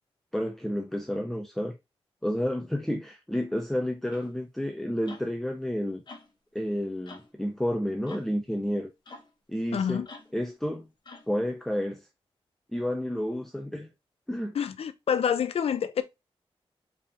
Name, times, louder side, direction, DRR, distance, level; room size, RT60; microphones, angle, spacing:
voice 1, 0.3-1.7 2.2-6.0 6.5-8.9 9.5-10.1 10.3-10.9 11.3-12.1 12.7-13.9 14.3-14.6, equal, 5° left, 0.5 m, -30 dB
sound 1, 4.1-4.3 5.1-5.3 6.1-6.3 7.1-7.3 8.1-8.3 9.1-9.3 10.1-10.4 11.1-11.3, left 3 dB, 45° left, 1.1 m, -47 dB
voice 2, 9.7-10.1 14.5-16.0, left 8 dB, 80° left, 0.6 m, -27 dB
4.8 x 3.5 x 2.9 m
wide cardioid pair, 150°, 10 cm